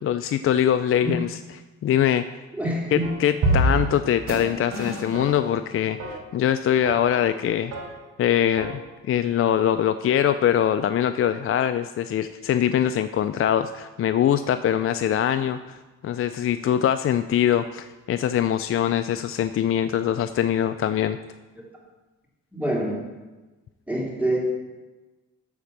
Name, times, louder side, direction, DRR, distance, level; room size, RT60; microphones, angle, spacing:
voice 1, 0.0-2.2 2.9-7.7 8.2-8.8 9.1-15.8 16.0-21.2, left 10 dB, 45° left, 10 dB, 0.4 m, -23 dB
voice 2, 2.6-3.0 22.5-23.0 23.9-24.4, right 1 dB, 5° right, -3 dB, 3.2 m, -25 dB
sound 1, 3.0-3.1 3.4-4.0 4.3-4.4 4.7-5.5 6.0-6.1 6.8-7.0 7.7-7.8 8.6-8.7, right 1 dB, 70° right, 3.9 m, -25 dB
12.0 x 4.4 x 7.2 m, 1.2 s
cardioid pair, 90°, 30 cm